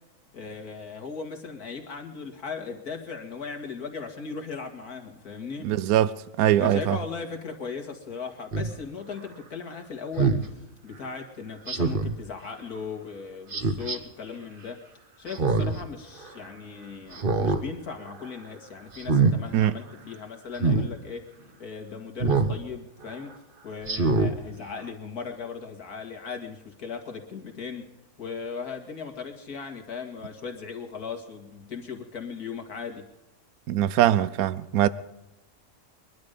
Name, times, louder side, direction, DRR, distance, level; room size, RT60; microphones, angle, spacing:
voice 1, 0.3-5.7 6.6-14.8 15.2-21.3 21.6-23.4 23.6-27.9 28.2-33.1, left 5 dB, 85° left, 2.6 m, -38 dB
voice 2, 5.6-7.0 19.5-19.8 33.7-34.9, right 12 dB, 75° right, 1.1 m, -22 dB
Speech synthesizer, 8.5-8.7 10.2-10.4 11.7-12.2 13.5-14.0 15.3-15.8 16.2-16.3 17.1-17.6 18.0-18.3 18.9-19.4 20.6-20.9 22.2-22.6 23.0-23.1 23.8-24.3 24.8-24.9, right 4 dB, 40° right, 1.3 m, -24 dB
23.0 x 12.0 x 5.2 m
omnidirectional pair, 1.6 m